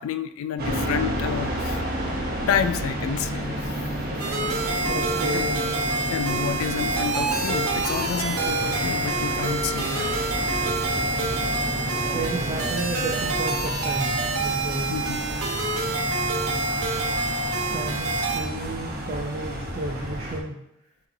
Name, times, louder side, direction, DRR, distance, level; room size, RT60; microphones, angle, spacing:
voice 1, 0.0-1.9 2.5-3.8 5.3-5.6 6.1-10.1 14.9-15.2, left 8 dB, 70° left, 11 dB, 0.3 m, -29 dB
sound 1, 0.6-20.4, equal, 45° right, 0.8 m, -31 dB
sound 2, 1.3-12.7, equal, 20° left, 1.7 m, -38 dB
sound 3, 4.2-18.4, right 3 dB, 80° right, 0.9 m, -27 dB
voice 2, 4.9-5.6 12.1-14.9 17.7-20.6, right 2 dB, 30° right, -1 dB, 0.5 m, -32 dB
6.4 x 2.9 x 2.7 m, 0.80 s
head